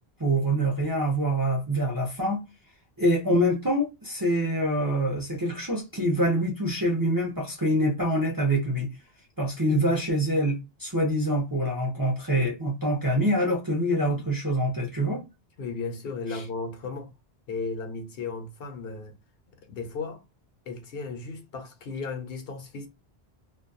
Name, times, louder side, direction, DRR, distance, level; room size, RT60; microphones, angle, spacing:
voice 1, 0.2-2.4 3.0-8.9 9.4-15.3, equal, 25° right, 0.5 m, -25 dB
voice 2, 15.6-17.1 17.5-19.1 19.7-20.2 20.7-22.9, left 4 dB, 70° left, 0.9 m, -35 dB
2.3 x 2.2 x 2.5 m
omnidirectional pair, 1.1 m